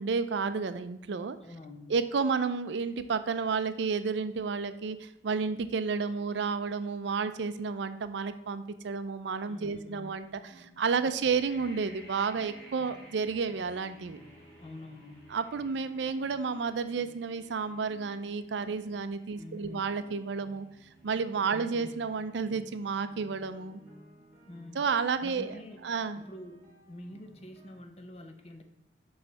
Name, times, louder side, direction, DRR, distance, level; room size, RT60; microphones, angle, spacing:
voice 1, 0.0-1.4 1.9-10.3 10.6-14.2 15.3-20.7 21.0-23.8 24.7-25.5 25.8-26.2, right 5 dB, 75° right, 11 dB, 0.4 m, -31 dB
voice 2, 1.4-2.0 9.5-10.2 14.6-15.3 19.3-19.9 21.5-21.9 24.5-24.8 25.2-25.8 26.2-28.6, left 1 dB, 35° left, 5 dB, 0.7 m, -47 dB
sound 1, 10.3-27.8, right 1 dB, 10° right, 1.8 m, -57 dB
sound 2, 11.2-23.0, equal, 10° left, 2.6 m, -57 dB
6.8 x 3.2 x 5.8 m, 0.87 s
head